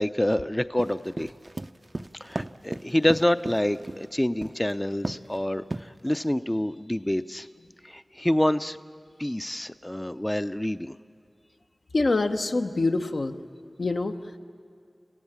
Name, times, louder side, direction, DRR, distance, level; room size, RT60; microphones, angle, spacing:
voice 1, 0.0-1.3 2.2-7.5 7.8-8.8 9.2-10.9, left 1 dB, 20° left, 11 dB, 0.5 m, -27 dB
sound 1, 0.8-4.0 4.4-4.7 5.0-5.3 5.7-6.2, right 2 dB, 45° right, 0.6 m, -34 dB
voice 2, 11.9-13.4 13.8-14.2, left 3 dB, 80° left, 4 dB, 0.9 m, -25 dB
29.5 x 16.0 x 8.8 m, 2.2 s
wide cardioid pair, 40°, 0 cm